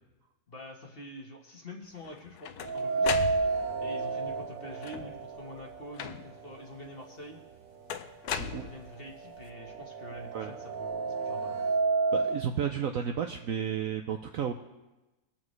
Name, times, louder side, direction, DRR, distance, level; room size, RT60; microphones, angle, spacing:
voice 1, 0.5-3.1 3.8-7.4 8.3-11.6, left 1 dB, 35° left, 0 dB, 1.3 m, -46 dB
sound 1, 2.0-3.9 4.7-5.3 6.0-6.5 7.9-9.2, left 9 dB, 70° left, 1.0 m, -37 dB
sound 2, 2.6-6.7 7.0-7.1 8.1-8.2 8.6-12.4, right 4 dB, 90° right, 1.5 m, -31 dB
voice 2, 12.1-14.5, right 8 dB, 65° right, 5 dB, 0.8 m, -32 dB
21.0 x 7.2 x 3.2 m, 1.1 s
omnidirectional pair, 1.9 m